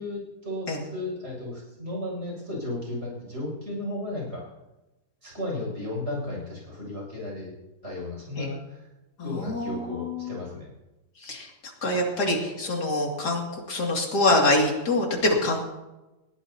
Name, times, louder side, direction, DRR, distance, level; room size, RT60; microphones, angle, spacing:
voice 1, 0.0-4.5 5.2-7.5 7.8-8.9 9.2-10.7, left 1 dB, 40° right, -2 dB, 7.2 m, -34 dB
voice 2, 9.2-10.3 11.2-11.5 11.8-15.6, left 2 dB, 75° left, -1 dB, 3.2 m, -25 dB
20.5 x 16.5 x 2.9 m, 1.0 s
omnidirectional pair, 1.8 m